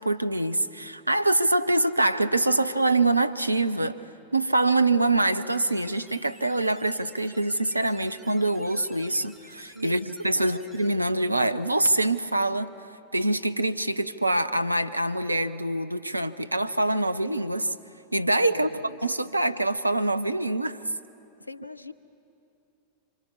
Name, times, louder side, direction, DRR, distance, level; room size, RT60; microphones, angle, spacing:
voice 1, 0.0-4.0 4.3-12.7 13.1-17.7 18.1-18.7 19.0-20.8, right 2 dB, 85° right, 12 dB, 0.7 m, -25 dB
sound 1, 5.5-10.9, right 1 dB, ahead, 2.2 m, -53 dB
voice 2, 9.7-10.6 18.5-19.3 21.4-21.9, left 1 dB, 85° left, 15 dB, 0.7 m, -40 dB
27.5 x 25.5 x 5.5 m, 2.8 s
figure-of-eight pair, 90°, 0 cm